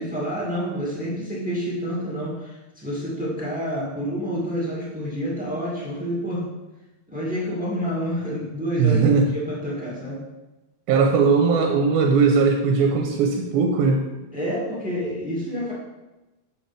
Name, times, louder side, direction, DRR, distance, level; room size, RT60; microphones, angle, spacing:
voice 1, 0.0-6.5 7.1-10.2 14.3-15.7, equal, 5° right, -7 dB, 1.2 m, -28 dB
voice 2, 8.8-9.2 10.9-14.1, right 5 dB, 85° right, 2 dB, 2.1 m, -19 dB
7.1 x 6.0 x 3.3 m, 1.0 s
omnidirectional pair, 3.5 m